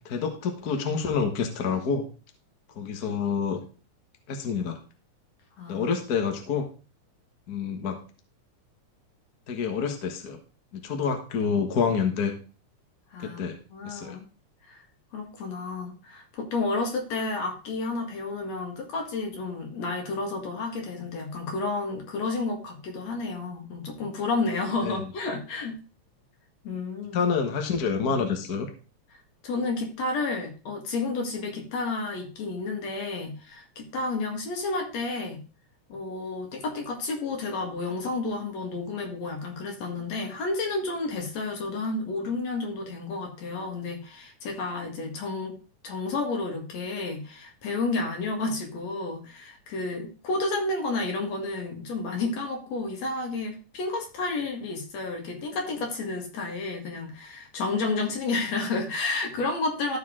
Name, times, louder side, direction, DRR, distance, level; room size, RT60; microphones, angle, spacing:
voice 1, 0.0-2.1 2.8-3.6 4.3-4.8 5.7-6.6 7.5-8.0 9.5-10.4 10.7-12.3 13.2-13.6 13.8-14.2 24.8-24.9 27.1-28.7, left 6 dB, 50° left, 4 dB, 1.2 m, -27 dB
voice 2, 13.7-14.2 14.7-14.8 15.1-25.8 26.6-27.2 29.4-35.4 35.9-45.6 45.8-60.0, left 3 dB, 65° left, 2 dB, 3.0 m, -31 dB
14.0 x 4.7 x 3.7 m, 0.36 s
omnidirectional pair, 3.4 m